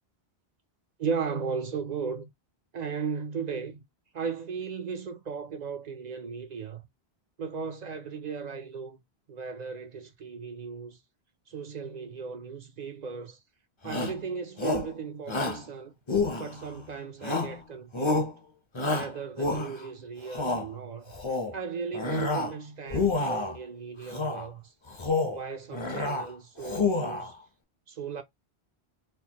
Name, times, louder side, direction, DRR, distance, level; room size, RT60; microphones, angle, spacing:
voice 1, 1.0-2.3 2.7-3.8 4.1-6.8 7.4-9.0 9.3-11.0 11.5-13.4 13.8-15.9 16.4-18.3 18.8-21.1 21.5-24.7 25.3-27.4 27.9-28.2, right 5 dB, 55° right, 0.5 m, -36 dB
Shout, 13.8-14.2 14.6-14.9 15.3-15.6 16.1-16.8 17.2-17.6 17.9-18.3 18.8-19.9 20.3-20.7 21.1-21.6 21.9-22.6 22.9-23.6 24.1-24.5 24.9-25.4 25.7-26.3 26.6-27.3, left 3 dB, 30° left, 0.7 m, -29 dB
4.4 x 2.1 x 2.8 m
omnidirectional pair, 1.1 m